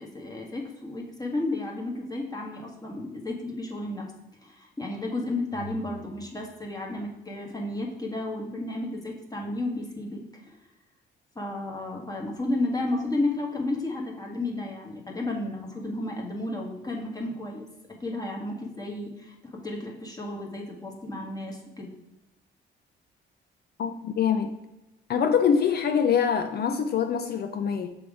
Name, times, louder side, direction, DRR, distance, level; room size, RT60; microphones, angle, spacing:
voice 1, 0.0-4.1 4.4-10.2 10.5-10.6 11.3-17.7 18.0-21.9, left 2 dB, 20° left, 1.3 m, -32 dB
voice 2, 23.8-24.5 25.1-28.0, left 7 dB, 55° left, 0.4 m, -24 dB
6.2 x 3.5 x 4.8 m
cardioid pair, 90°, 20 cm